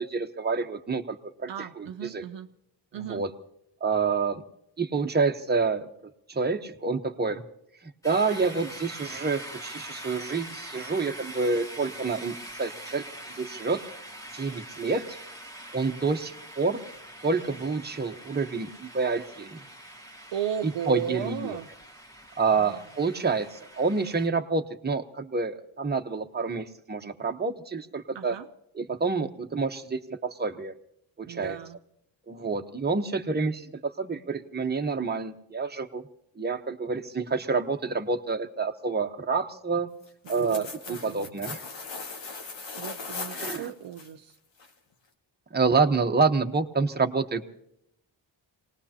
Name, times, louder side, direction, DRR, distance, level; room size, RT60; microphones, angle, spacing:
voice 1, 0.0-2.2 2.9-3.3 3.8-4.4 4.8-7.4 8.0-13.9 14.3-15.1 15.7-16.8 17.2-19.6 20.9-21.6 22.4-28.4 28.7-30.7 31.2-31.6 32.3-36.0 36.4-39.9 40.3-41.6 43.3-43.7 45.5-47.4, right 4 dB, 20° right, 5 dB, 1.0 m, -28 dB
voice 2, 1.5-2.5 2.9-3.2 20.3-21.7 22.5-22.7 28.1-28.5 31.2-31.8 40.2-41.4 42.8-44.4, right 10 dB, 65° right, 7 dB, 0.7 m, -35 dB
sound 1, 8.0-24.3, right 1 dB, 5° left, 1.9 m, -44 dB
sound 2, 40.0-44.1 44.6-44.7, left 4 dB, 70° left, 2.0 m, -38 dB
26.0 x 19.0 x 2.9 m, 0.77 s
cardioid pair, 95°, 47 cm